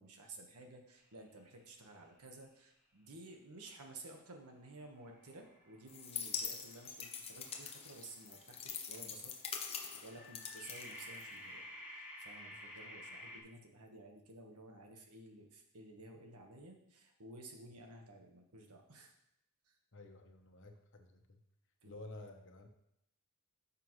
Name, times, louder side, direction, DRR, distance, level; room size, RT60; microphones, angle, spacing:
voice 1, 0.0-11.6 11.9-19.1 19.7-19.8 21.8-22.0, right 2 dB, 90° right, 3 dB, 1.5 m, -54 dB
sound 1, 4.4-9.0 10.0-13.4, left 1 dB, 10° right, 1.7 m, -52 dB
sound 2, 5.9-11.6, left 6 dB, 25° left, 0.8 m, -44 dB
voice 2, 19.9-21.4 21.8-22.7, left 2 dB, 55° left, 5 dB, 1.1 m, -52 dB
12.5 x 6.7 x 3.2 m, 0.79 s
head